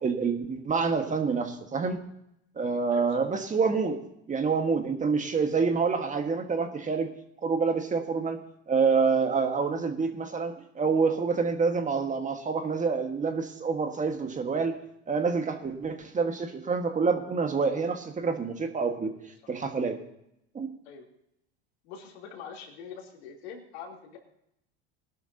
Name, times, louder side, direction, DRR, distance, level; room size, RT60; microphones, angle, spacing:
voice 1, 0.0-2.0 2.6-4.0 4.3-7.1 7.4-8.4 8.7-14.8 15.1-19.1 19.5-20.0 20.5-20.7, right 5 dB, 25° right, 5 dB, 1.7 m, -27 dB
voice 2, 2.9-3.3 19.4-19.5 20.9-21.1 21.8-24.2, left 6 dB, 75° left, -1 dB, 3.4 m, -44 dB
20.0 x 12.0 x 2.9 m, 0.78 s
hypercardioid pair, 95°, 33 cm